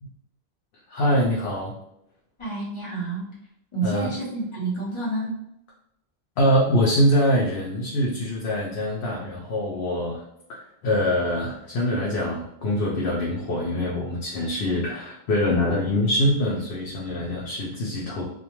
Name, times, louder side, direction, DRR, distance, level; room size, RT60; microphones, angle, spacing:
voice 1, 0.9-1.7 3.8-4.1 6.4-10.2 10.5-18.2, equal, 80° left, -4 dB, 0.9 m, -24 dB
voice 2, 2.4-3.4 3.7-5.4, right 3 dB, 30° left, -6 dB, 0.9 m, -29 dB
2.4 x 2.2 x 2.9 m, 0.79 s
omnidirectional pair, 1.1 m